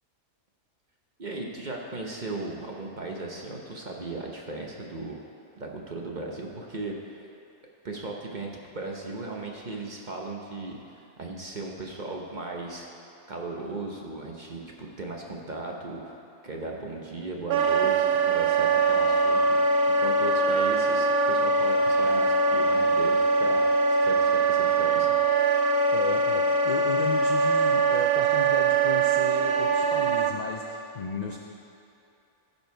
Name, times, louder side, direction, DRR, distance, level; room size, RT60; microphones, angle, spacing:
voice 1, 1.2-5.2 5.6-6.9 7.8-8.5 8.7-12.9 13.3-23.6 23.9-25.1, right 2 dB, 40° right, -1 dB, 0.8 m, -37 dB
Wind instrument woodwind instrument, 17.5-30.3, right 3 dB, 80° right, 1.1 m, -22 dB
voice 2, 25.9-31.4, left 4 dB, 60° left, 0 dB, 0.4 m, -35 dB
15.0 x 5.6 x 4.6 m, 2.7 s
omnidirectional pair, 1.6 m